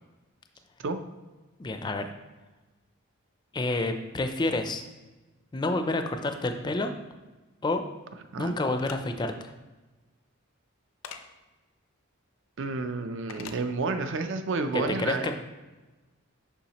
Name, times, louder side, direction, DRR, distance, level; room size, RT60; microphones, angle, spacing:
voice 1, 1.6-2.1 3.5-4.8 5.5-6.9 7.6-7.8 8.4-9.5 14.7-15.3, left 2 dB, 20° left, 6 dB, 0.4 m, -29 dB
sound 1, 8.8-9.0 11.0-11.2 13.3-13.6, left 7 dB, 75° left, 0.5 m, -41 dB
voice 2, 12.6-15.3, right 3 dB, 60° right, 8 dB, 0.4 m, -30 dB
7.0 x 5.5 x 2.9 m, 1.2 s
head